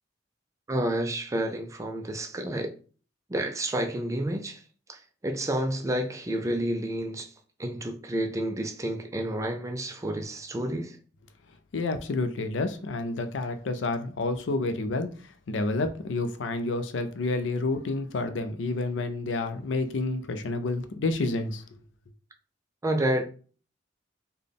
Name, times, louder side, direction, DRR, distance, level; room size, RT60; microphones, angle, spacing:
voice 1, 0.7-2.7 3.3-4.6 4.9-7.3 7.6-11.0 22.8-23.3, right 1 dB, 15° right, 0.4 m, -30 dB
voice 2, 11.7-21.6, left 2 dB, 75° left, 0.5 m, -29 dB
4.0 x 2.2 x 3.4 m
head